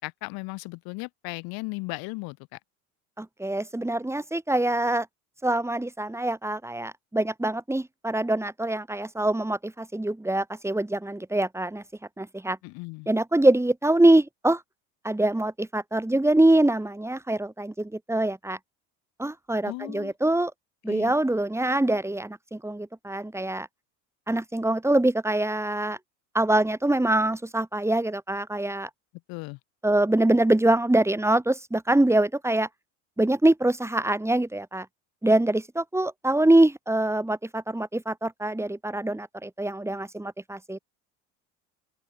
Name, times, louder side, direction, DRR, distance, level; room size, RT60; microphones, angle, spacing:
voice 1, 0.0-2.6 12.6-13.1 19.6-20.1 20.8-21.1 29.3-29.6, left 27 dB, 70° left, 4.4 m, -36 dB
voice 2, 3.2-5.1 5.4-11.8 12.2-12.6 13.1-14.6 15.0-18.6 19.2-20.5 20.8-23.7 24.3-26.0 26.3-28.9 29.8-32.7 33.2-34.9 35.2-40.8, right 1 dB, 5° right, 5.5 m, -24 dB
open air
hypercardioid pair, 85°, 38 cm